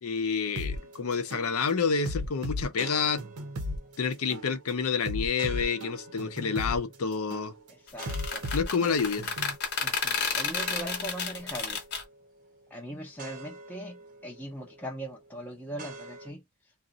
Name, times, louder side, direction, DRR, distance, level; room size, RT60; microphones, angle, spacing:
voice 1, 0.0-3.2 4.0-7.5 8.5-9.3, left 5 dB, 80° left, 0.5 m, -28 dB
sound 1, 0.6-0.8 1.3-1.5 2.1-3.8 4.3-4.5 5.1-6.8 7.3-7.5 8.1-9.6, left 1 dB, 85° right, 0.6 m, -35 dB
sound 2, 0.7-16.3, right 2 dB, 40° right, 0.6 m, -49 dB
voice 2, 7.7-8.5 9.8-11.8 12.7-16.4, right 1 dB, 10° left, 0.5 m, -40 dB
sound 3, 7.9-12.0, left 5 dB, 50° left, 0.8 m, -31 dB
2.5 x 2.0 x 3.8 m
head